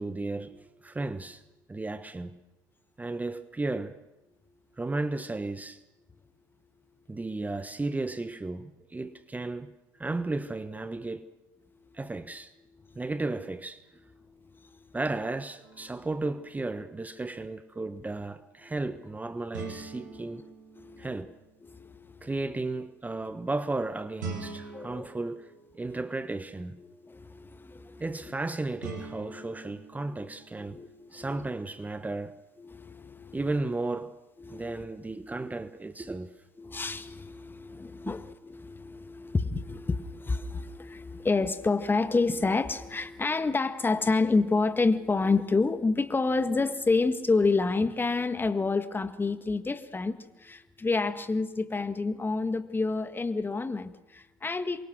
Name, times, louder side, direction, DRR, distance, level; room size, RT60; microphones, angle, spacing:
voice 1, 0.0-1.4 1.7-2.4 3.0-4.0 4.8-5.8 7.1-9.7 10.0-11.2 11.9-12.5 12.9-13.8 14.9-20.5 21.0-21.3 22.2-26.8 28.0-30.8 31.1-32.4 33.3-34.1 34.5-36.3, right 2 dB, 15° right, 1.3 m, -34 dB
voice 2, 11.7-12.0 12.7-13.0 14.2-15.0 18.6-18.7 19.3-19.5 20.1-20.5 20.7-21.3 21.6-22.5 23.2-23.3 24.7-25.1 25.9-26.0 26.8-28.3 29.3-29.7 30.1-30.3 30.6-31.5 32.6-33.6 34.4-34.9 36.0-36.1 36.6-54.9, left 3 dB, 20° left, 1.8 m, -29 dB
sound 1, 15.6-16.6 19.5-21.7 24.2-26.3 28.8-31.0, right 4 dB, 80° right, 5.2 m, -44 dB
27.5 x 23.5 x 6.4 m
hypercardioid pair, 65°, 10 cm